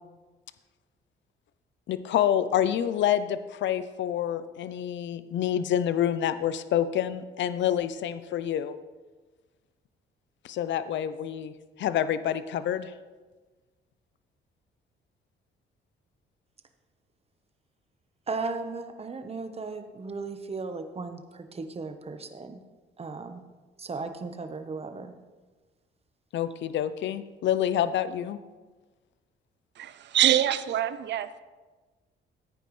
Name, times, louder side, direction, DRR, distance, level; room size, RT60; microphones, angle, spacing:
voice 1, 1.9-8.7 10.4-12.9 26.3-28.4, left 10 dB, 65° left, 13 dB, 0.6 m, -27 dB
voice 2, 18.3-22.6 23.0-23.4 23.8-25.1, right 4 dB, 30° right, 7 dB, 1.0 m, -36 dB
voice 3, 29.8-31.4, right 11 dB, 65° right, 14 dB, 0.6 m, -25 dB
14.5 x 9.1 x 3.2 m, 1.3 s
cardioid pair, 90°, 20 cm